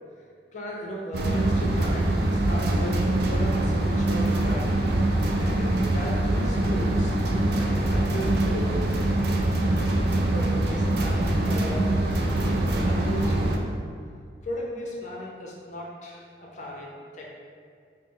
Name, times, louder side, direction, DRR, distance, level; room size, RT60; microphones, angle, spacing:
voice 1, 0.5-2.2 2.4-3.0 3.3-4.6 5.0-7.1 7.6-9.1 10.1-11.9 12.7-13.5 14.4-17.3, equal, 45° left, -3 dB, 0.6 m, -36 dB
sound 1, 1.1-13.6, right 1 dB, 60° right, 0.4 m, -24 dB
3.8 x 2.0 x 3.7 m, 2.1 s
head